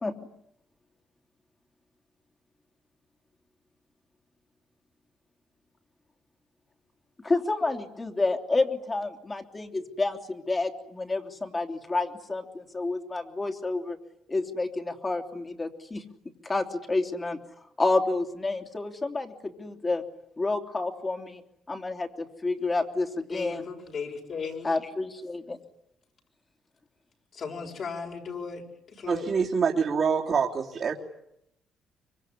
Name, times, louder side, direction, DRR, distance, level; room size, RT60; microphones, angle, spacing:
voice 1, 7.2-14.0 14.3-16.0 16.4-17.4 17.8-20.0 20.4-21.4 21.7-23.7 24.6-25.6, left 3 dB, 25° left, 5 dB, 3.3 m, -29 dB
voice 2, 23.3-24.7 27.3-28.6 28.9-29.3, left 5 dB, 55° left, 1 dB, 6.5 m, -36 dB
voice 3, 29.1-30.9, right 6 dB, 50° right, -5 dB, 3.2 m, -25 dB
25.5 x 23.5 x 9.9 m, 0.79 s
cardioid pair, 90°, 0 cm